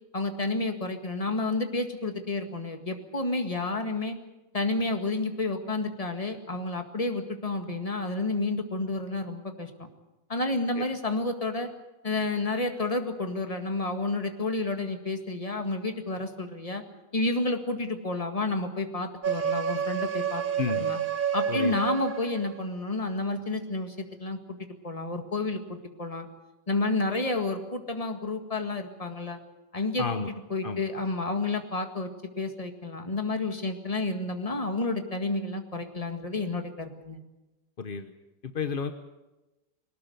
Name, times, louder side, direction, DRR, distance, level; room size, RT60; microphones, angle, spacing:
voice 1, 0.1-4.2 4.5-9.9 10.3-11.7 12.0-16.8 17.1-20.4 20.7-21.0 21.3-24.4 24.8-26.3 26.7-29.4 29.7-32.1 32.4-37.2, left 2 dB, 20° left, 5 dB, 1.8 m, -30 dB
sound 1, 19.2-22.6, right 8 dB, 70° right, 0.5 m, -29 dB
voice 2, 20.6-20.9 21.5-21.8 30.0-30.3 30.6-30.8 37.8-38.1 38.4-38.9, left 5 dB, 45° left, 8 dB, 0.7 m, -31 dB
21.5 x 19.0 x 8.1 m, 1.0 s
omnidirectional pair, 2.1 m